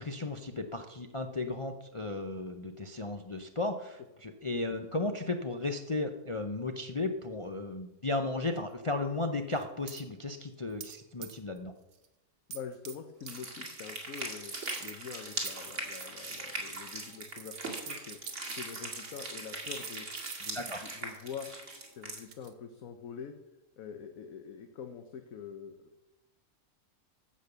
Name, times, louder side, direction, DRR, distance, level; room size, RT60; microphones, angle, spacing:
voice 1, 0.0-11.7 20.5-20.8, left 2 dB, 35° left, 5 dB, 0.5 m, -35 dB
sound 1, 9.5-10.0 10.8-11.0 11.2-11.6 11.9-12.1 12.5-13.0 13.3-13.4 13.8-14.2 14.6-18.3 19.1-19.2 19.5-22.5, right 8 dB, 90° right, 1.6 m, -46 dB
voice 2, 12.5-18.2 18.5-20.1 20.4-21.5 21.9-23.3 23.8-26.0, left 7 dB, 70° left, 6 dB, 1.2 m, -45 dB
sound 2, 13.2-22.2, right 2 dB, 55° right, 2.5 m, -40 dB
15.0 x 5.5 x 6.8 m, 0.94 s
omnidirectional pair, 1.6 m